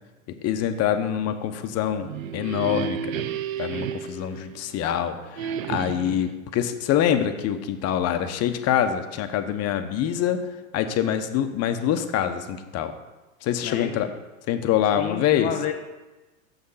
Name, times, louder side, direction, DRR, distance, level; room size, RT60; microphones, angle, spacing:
voice 1, 0.3-3.3 3.6-10.5 10.7-12.9 13.4-14.1 14.5-15.5, left 10 dB, 40° left, 8 dB, 0.9 m, -25 dB
sound 1, 1.9-4.9 5.4-6.3, right 8 dB, 70° right, 0.7 m, -32 dB
voice 2, 13.6-14.1 15.0-15.7, left 9 dB, 20° left, 3 dB, 0.4 m, -31 dB
6.9 x 6.5 x 5.5 m, 1.1 s
hypercardioid pair, 100°, 41 cm